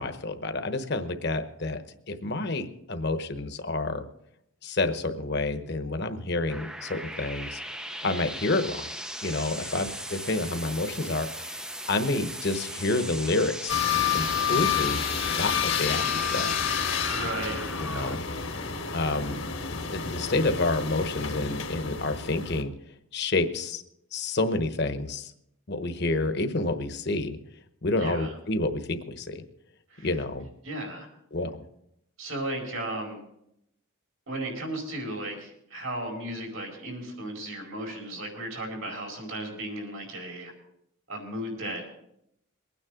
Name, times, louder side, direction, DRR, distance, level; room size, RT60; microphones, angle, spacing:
voice 1, 0.0-1.8 2.1-4.0 4.6-7.6 8.0-8.9 9.2-11.6 11.9-13.8 14.1-15.0 15.4-16.5 17.8-18.2 18.9-19.4 19.9-22.7 23.1-23.8 24.1-25.3 25.7-27.4 27.8-29.4 30.0-30.4 31.3-31.5, left 2 dB, 50° left, 8 dB, 1.1 m, -29 dB
sound 1, 6.5-18.2, right 1 dB, 5° right, 0.5 m, -38 dB
sound 2, 13.7-22.6, left 7 dB, 70° left, 1.4 m, -29 dB
voice 2, 17.1-17.6 28.0-28.3 29.9-30.1 30.6-31.1 32.2-33.2 34.3-40.5 41.1-41.8, right 1 dB, 75° right, 1 dB, 4.9 m, -35 dB
22.5 x 9.6 x 3.8 m, 0.78 s
head